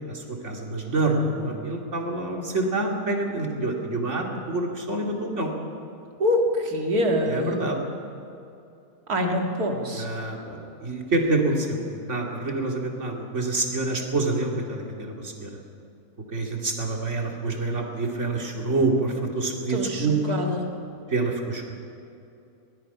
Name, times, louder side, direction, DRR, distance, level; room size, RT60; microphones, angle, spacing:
voice 1, 0.1-5.5 7.3-7.8 9.9-15.6 16.3-20.4 21.1-21.7, right 2 dB, 50° right, 0 dB, 3.0 m, -27 dB
voice 2, 6.2-7.6 9.1-10.1 19.7-20.7, equal, 75° right, 1 dB, 2.9 m, -25 dB
23.5 x 19.5 x 5.7 m, 2.7 s
omnidirectional pair, 1.6 m